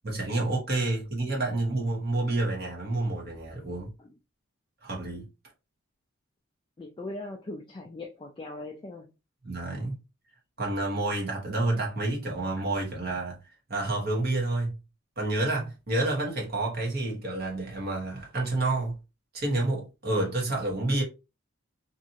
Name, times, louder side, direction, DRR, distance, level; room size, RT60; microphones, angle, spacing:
voice 1, 0.0-3.9 4.8-5.3 9.4-9.9 10.6-13.4 13.7-14.8 15.2-18.9 19.3-21.0, right 2 dB, 45° right, 1.1 m, -29 dB
voice 2, 3.7-4.1 6.8-9.1, left 2 dB, 25° left, 0.3 m, -41 dB
2.7 x 2.5 x 2.6 m
head